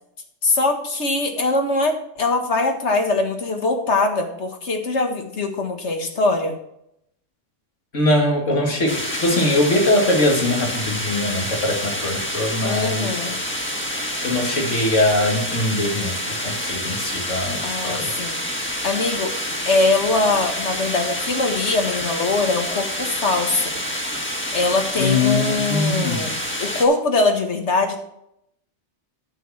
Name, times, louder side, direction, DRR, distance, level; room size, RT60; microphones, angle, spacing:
voice 1, 0.4-6.6 12.6-13.4 17.6-18.4 18.8-19.3 19.7-23.8 24.5-26.3 26.6-28.0, left 3 dB, 70° left, 4 dB, 1.9 m, -22 dB
voice 2, 7.9-13.2 14.2-18.1 25.0-26.3, left 1 dB, 90° left, 1 dB, 2.6 m, -22 dB
sound 1, 8.9-26.8, equal, 10° left, 1.7 m, -28 dB
10.0 x 8.5 x 4.3 m, 0.77 s
omnidirectional pair, 1.2 m